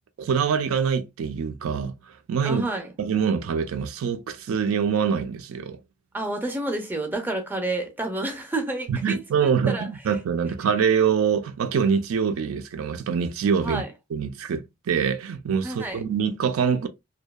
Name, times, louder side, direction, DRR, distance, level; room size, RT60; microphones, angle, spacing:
voice 1, 0.2-2.6 3.0-5.8 8.9-13.8 14.1-16.9, right 6 dB, 80° right, 0.4 m, -24 dB
voice 2, 2.4-2.9 6.1-9.9 13.6-13.9 15.6-16.0, right 2 dB, 10° right, 0.5 m, -29 dB
2.6 x 2.2 x 2.2 m
head